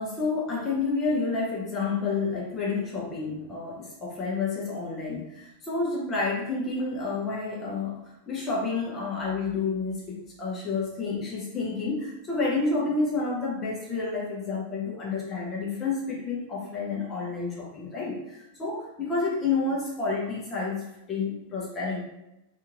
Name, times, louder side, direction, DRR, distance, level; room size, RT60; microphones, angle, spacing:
voice 1, 0.0-22.0, left 4 dB, 25° left, -3 dB, 0.7 m, -30 dB
2.6 x 2.5 x 2.9 m, 0.91 s
figure-of-eight pair, 90°, 0 cm